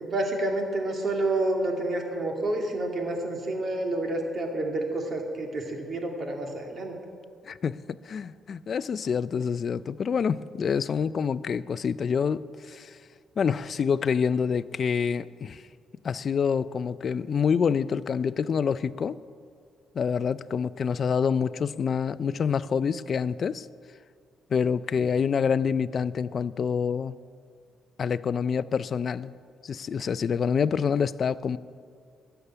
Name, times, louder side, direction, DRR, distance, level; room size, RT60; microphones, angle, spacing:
voice 1, 0.0-6.9, right 2 dB, 45° right, 1 dB, 2.5 m, -29 dB
voice 2, 7.5-13.0 13.4-15.6 16.0-19.2 19.9-23.7 24.5-27.1 28.0-29.3 29.6-31.6, left 6 dB, 50° left, 17 dB, 0.4 m, -27 dB
13.0 x 7.0 x 9.9 m, 2.2 s
cardioid pair, 90°, 0 cm